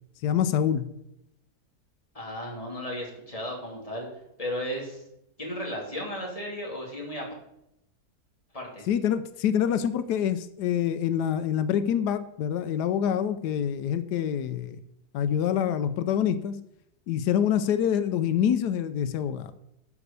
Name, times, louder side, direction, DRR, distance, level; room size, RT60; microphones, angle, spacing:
voice 1, 0.2-0.9 8.9-14.8 15.1-16.6 17.1-19.5, left 9 dB, 90° left, 12 dB, 1.2 m, -26 dB
voice 2, 2.1-4.1 4.4-5.0 5.4-7.3 8.5-8.9, equal, 20° left, -1 dB, 2.8 m, -34 dB
12.0 x 4.9 x 6.8 m, 0.80 s
omnidirectional pair, 1.7 m